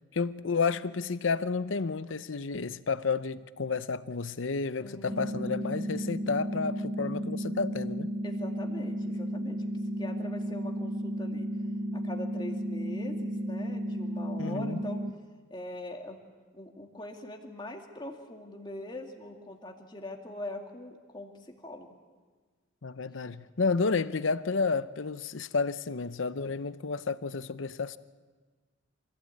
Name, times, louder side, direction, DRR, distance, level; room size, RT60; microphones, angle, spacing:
voice 1, 0.1-8.1 14.4-14.8 22.8-28.0, left 4 dB, 75° left, 0.7 m, -31 dB
voice 2, 4.8-5.5 8.2-9.6 10.0-11.5 11.9-15.0 15.5-16.2 16.5-22.0, left 1 dB, 25° left, 2.3 m, -42 dB
sound 1, 5.1-15.1, equal, 50° right, 1.1 m, -33 dB
26.0 x 16.0 x 8.6 m
head